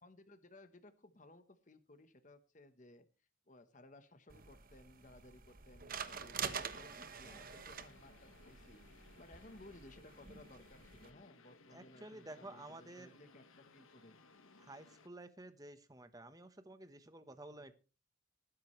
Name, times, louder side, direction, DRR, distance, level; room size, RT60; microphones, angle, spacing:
voice 1, 0.0-3.0 3.5-14.1, left 1 dB, 40° left, 9 dB, 1.1 m, -59 dB
sound 1, 4.3-11.1, right 6 dB, 45° right, 1.1 m, -47 dB
sound 2, 6.7-15.1, left 3 dB, 85° left, 1.6 m, -63 dB
voice 2, 11.7-13.2 14.6-17.7, right 2 dB, 20° right, 10 dB, 1.1 m, -52 dB
20.0 x 9.9 x 3.2 m, 0.35 s
head